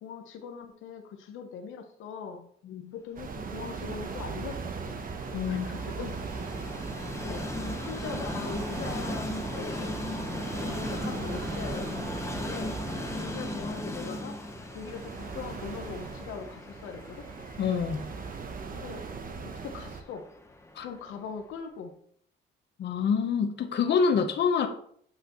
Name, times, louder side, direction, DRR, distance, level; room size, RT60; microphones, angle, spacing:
voice 1, 0.0-2.5 2.9-5.1 5.5-6.2 7.2-10.0 10.4-12.1 12.4-12.8 13.2-14.4 14.7-17.3 18.7-19.1 19.4-20.3 20.8-22.0, left 6 dB, 85° left, 5 dB, 0.9 m, -41 dB
sound 1, 3.2-20.0, right 5 dB, 45° right, 0.9 m, -39 dB
Train, 3.3-21.4, left 2 dB, 15° left, 1.0 m, -39 dB
voice 2, 5.3-5.7 17.6-18.0 20.7-20.9 22.8-24.7, left 6 dB, 60° left, 6 dB, 0.9 m, -26 dB
8.3 x 5.8 x 3.1 m, 0.62 s
cardioid pair, 90°, 20 cm